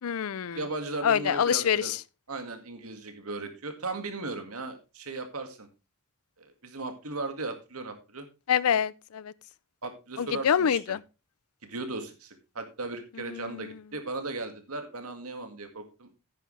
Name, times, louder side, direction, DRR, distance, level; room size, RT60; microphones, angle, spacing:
voice 1, 0.0-0.6 1.0-2.0 8.5-9.3 10.2-11.0 13.2-13.8, left 8 dB, 75° left, 0.4 m, -26 dB
voice 2, 0.5-1.9 2.3-5.7 6.4-8.3 9.8-10.8 11.6-16.1, right 3 dB, 80° right, 2.0 m, -37 dB
10.0 x 9.9 x 3.3 m
head